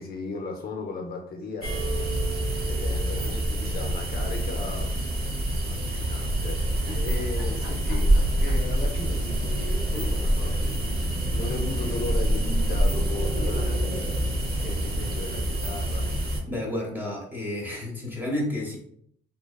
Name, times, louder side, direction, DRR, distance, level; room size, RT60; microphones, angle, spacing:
voice 1, 0.0-2.0 2.7-4.9 5.7-14.2 14.5-16.1, left 3 dB, 50° left, 2 dB, 0.4 m, -37 dB
sound 1, 1.6-5.3, right 9 dB, 25° left, 0.8 m, -40 dB
sound 2, 1.6-16.4, right 1 dB, 50° right, 0.7 m, -26 dB
sound 3, 3.5-5.4 5.7-5.8 6.8-8.7 9.6-9.7 9.9-11.7 12.1-12.2 12.4-12.5, right 1 dB, 90° right, 1.1 m, -43 dB
voice 2, 16.5-18.8, left 1 dB, 10° right, -2 dB, 0.9 m, -31 dB
2.7 x 2.2 x 2.2 m, 0.67 s
cardioid pair, 90°, 20 cm